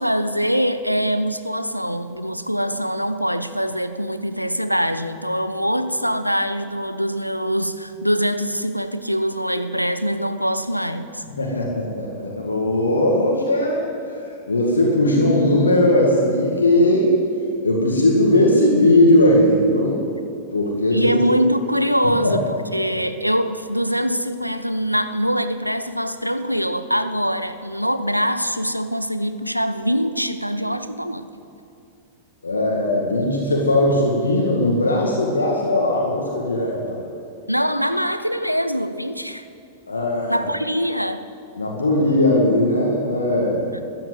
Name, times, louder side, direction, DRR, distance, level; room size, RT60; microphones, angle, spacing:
voice 1, 0.0-11.2 20.9-31.3 37.5-39.5 40.3-41.2 43.7-43.8, equal, 90° right, 11 dB, 0.7 m, -23 dB
voice 2, 11.3-13.8 14.1-14.2 14.5-17.1 17.6-20.0 20.5-21.1 22.2-22.4 32.4-37.0 39.9-40.5 41.6-43.8, left 1 dB, 75° left, -1 dB, 1.9 m, -18 dB
13.5 x 9.9 x 8.0 m, 2.5 s
figure-of-eight pair, 95°, 0 cm